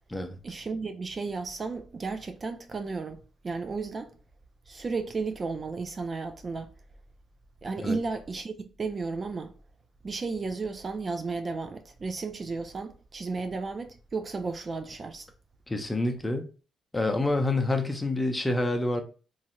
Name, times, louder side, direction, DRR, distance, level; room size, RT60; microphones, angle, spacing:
voice 1, 0.4-4.1 4.7-6.7 7.6-9.5 10.0-15.3, right 4 dB, 35° right, 0.4 m, -34 dB
voice 2, 15.7-16.4 16.9-19.0, left 2 dB, 15° left, 0.6 m, -27 dB
3.0 x 2.7 x 2.5 m
cardioid pair, 80°, 0 cm